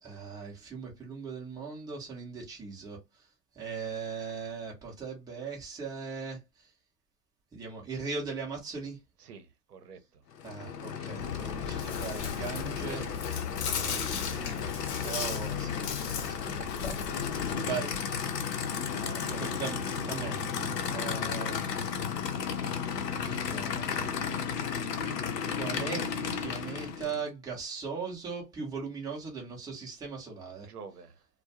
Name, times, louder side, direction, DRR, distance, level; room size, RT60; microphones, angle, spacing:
voice 1, 0.0-3.0 3.6-6.4 7.5-9.0 10.4-13.1 13.7-14.7 15.0-18.0 19.4-20.4 20.9-21.8 23.2-24.1 25.5-30.7, right 5 dB, 10° right, 0.7 m, -39 dB
voice 2, 9.2-10.2 14.5-14.6 18.9-19.5 30.7-31.3, right 6 dB, 65° right, 0.8 m, -48 dB
Aircraft / Idling, 10.3-27.3, left 6 dB, 75° left, 0.7 m, -34 dB
Chewing mastication, 11.2-17.5, left 7 dB, 45° left, 0.7 m, -36 dB
2.2 x 2.2 x 2.8 m
hypercardioid pair, 110°, 49 cm